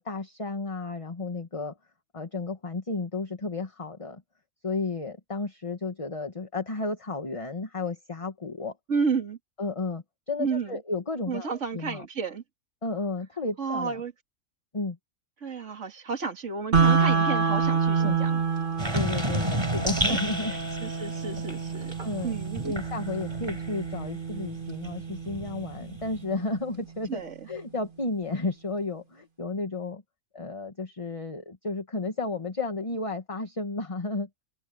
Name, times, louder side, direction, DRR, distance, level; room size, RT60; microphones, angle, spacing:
voice 1, 0.0-1.8 2.1-4.2 4.6-8.8 9.6-12.0 12.8-14.0 14.7-15.0 18.0-18.2 18.9-20.5 22.0-22.3 22.6-27.2 27.5-30.0 30.3-34.3, left 3 dB, 25° left, 1.5 m, -32 dB
voice 2, 8.9-9.4 10.4-10.8 11.3-12.4 13.6-14.1 15.4-18.3 18.9-19.1 19.4-19.8 20.0-22.0 22.2-22.7 27.1-27.3, right 5 dB, 55° right, 2.6 m, -32 dB
sound 1, 16.7-26.7, right 5 dB, 40° right, 1.9 m, -28 dB
sound 2, 18.8-24.1 24.5-26.2, equal, 20° right, 6.4 m, -33 dB
omnidirectional pair, 1.5 m